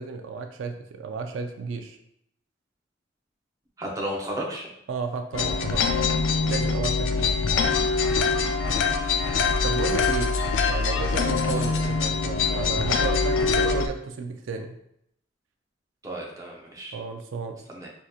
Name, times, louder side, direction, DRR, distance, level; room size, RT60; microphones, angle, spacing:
voice 1, 0.0-2.0 4.9-6.0 6.4-7.5 9.6-10.4 10.7-14.8 16.9-17.6, right 4 dB, 80° right, 5 dB, 0.4 m, -33 dB
voice 2, 3.8-4.7 8.6-8.8 11.5-11.6 16.0-17.0 17.7-17.9, right 1 dB, 15° right, -3 dB, 0.7 m, -33 dB
sound 1, 5.3-13.9, left 4 dB, 75° left, 0.4 m, -24 dB
4.8 x 2.8 x 2.4 m, 0.76 s
head